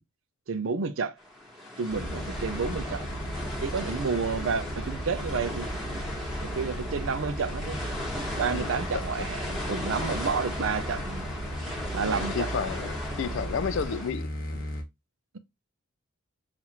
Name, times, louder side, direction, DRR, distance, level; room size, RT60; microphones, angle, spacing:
voice 1, 0.5-1.2 1.8-3.0 3.6-5.7 6.4-7.9 8.4-11.3 11.9-12.5, right 5 dB, 65° right, 0.5 m, -30 dB
sound 1, 1.2-14.1, left 1 dB, ahead, 1.2 m, -37 dB
sound 2, 1.9-14.8, equal, 45° left, 1.1 m, -36 dB
voice 2, 8.5-9.3 12.3-12.9 13.2-14.3, left 6 dB, 60° left, 0.4 m, -31 dB
5.6 x 2.5 x 2.9 m
head